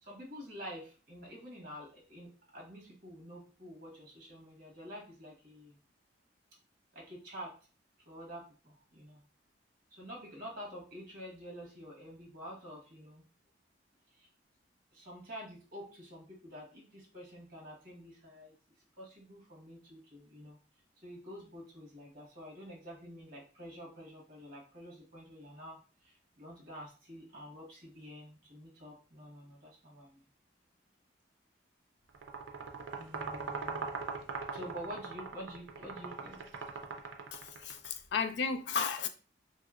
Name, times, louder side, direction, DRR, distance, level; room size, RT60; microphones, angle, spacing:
voice 1, 0.0-5.8 6.9-7.6 8.1-9.2 9.9-13.2 14.1-14.3 14.9-18.5 19.0-20.6 21.0-30.2 33.0-34.2 34.5-36.4, equal, 50° right, 1.2 m, -48 dB
sound 1, 32.1-37.9, right 4 dB, 90° right, 0.5 m, -41 dB
voice 2, 37.3-39.1, left 6 dB, 65° left, 0.4 m, -34 dB
3.1 x 2.8 x 2.4 m
head